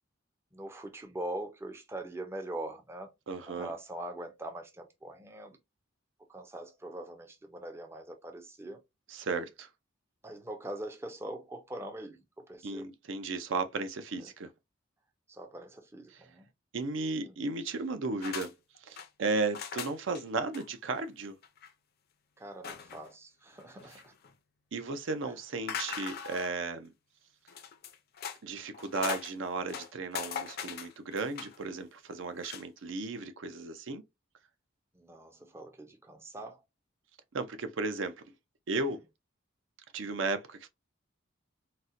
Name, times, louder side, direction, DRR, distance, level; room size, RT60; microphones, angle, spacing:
voice 1, 0.5-3.1 3.5-5.6 6.3-8.8 10.2-12.9 14.2-14.3 15.3-16.5 17.2-17.4 22.4-24.1 25.2-25.3 29.6-29.7 34.9-36.6, right 1 dB, 10° right, 0.5 m, -42 dB
voice 2, 3.3-3.7 9.1-9.7 12.6-14.5 16.1-16.2 16.7-18.5 18.8-21.4 24.7-26.9 28.4-34.0 37.3-38.2 38.7-39.0 39.9-40.7, right 3 dB, 65° right, 0.5 m, -35 dB
sound 1, 18.2-18.5 18.8-19.1 19.5-20.2 20.5-20.7 21.0-21.1 21.4-21.7 22.6-23.1 23.6-24.3 25.7-26.6 27.5-28.4 28.7-29.3 29.7-31.6 32.3-32.6, left 7 dB, 50° left, 0.5 m, -40 dB
4.1 x 2.1 x 2.5 m
head